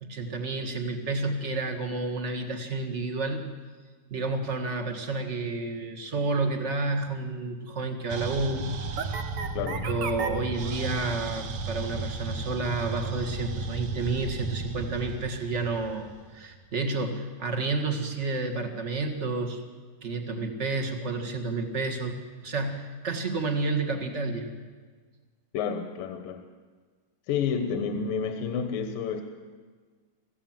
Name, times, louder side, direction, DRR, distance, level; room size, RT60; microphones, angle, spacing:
voice 1, 0.0-3.5 4.1-8.7 9.8-19.6 20.0-22.2 22.4-24.5, right 3 dB, 35° right, 4 dB, 1.2 m, -30 dB
sound 1, 8.1-16.6, right 4 dB, 60° right, 1.7 m, -34 dB
voice 2, 9.5-9.9 25.5-26.4 27.3-29.2, left 6 dB, 80° left, 6 dB, 2.7 m, -30 dB
25.5 x 16.0 x 7.4 m, 1.5 s
omnidirectional pair, 3.9 m